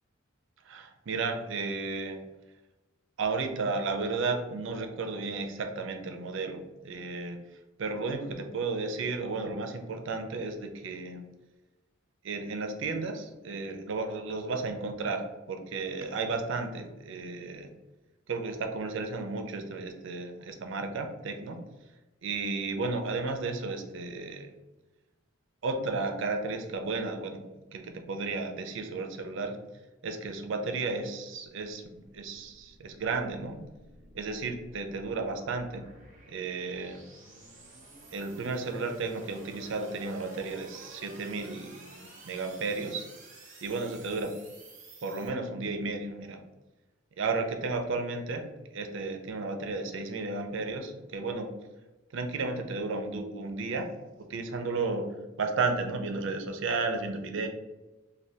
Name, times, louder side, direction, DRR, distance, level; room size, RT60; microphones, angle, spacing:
voice 1, 0.7-2.2 3.2-7.4 7.8-11.2 12.2-17.7 18.3-21.6 22.2-24.5 25.6-27.4 27.7-29.6 30.0-33.6 34.1-35.8 36.3-37.0 38.1-43.1 43.6-44.3 45.0-46.4 47.2-48.4 48.7-51.5 52.1-53.9 54.2-55.1 55.4-57.5, right 3 dB, 60° right, 5 dB, 0.4 m, -33 dB
sound 1, 31.4-45.3, right 2 dB, 40° right, 0.8 m, -52 dB
3.4 x 2.2 x 2.7 m, 1.1 s
head